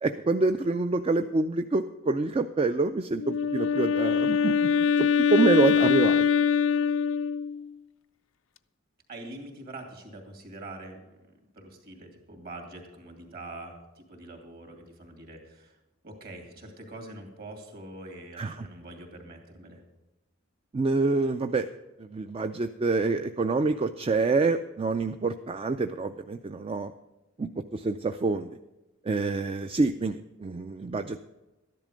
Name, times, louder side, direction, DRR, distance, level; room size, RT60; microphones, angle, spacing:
voice 1, 0.0-6.3 18.4-18.7 20.7-21.7 22.0-26.9 27.4-28.5 29.0-31.2, right 3 dB, 30° right, 8 dB, 0.4 m, -27 dB
Wind instrument woodwind instrument, 3.1-7.7, left 7 dB, 70° left, 0.4 m, -23 dB
voice 2, 9.1-11.3 11.5-15.8 16.0-19.8, right 2 dB, 50° right, 3 dB, 2.7 m, -44 dB
13.0 x 10.5 x 5.1 m, 1.0 s
head